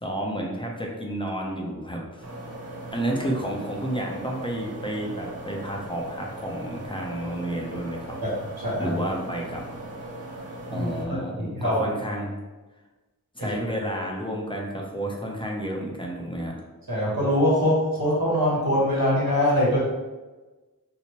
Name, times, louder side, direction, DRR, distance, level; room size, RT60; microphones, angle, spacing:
voice 1, 0.0-2.3 2.9-8.2 8.8-9.8 10.2-10.5 10.7-12.4 13.3-16.5, right 1 dB, 15° left, -1 dB, 0.6 m, -31 dB
sound 1, 2.2-11.0, right 1 dB, 40° right, 0.8 m, -39 dB
voice 2, 10.7-11.8 13.4-13.5 16.9-19.8, left 1 dB, 75° right, -6 dB, 1.4 m, -23 dB
3.2 x 2.9 x 2.9 m, 1.2 s
wide cardioid pair, 45°, 37 cm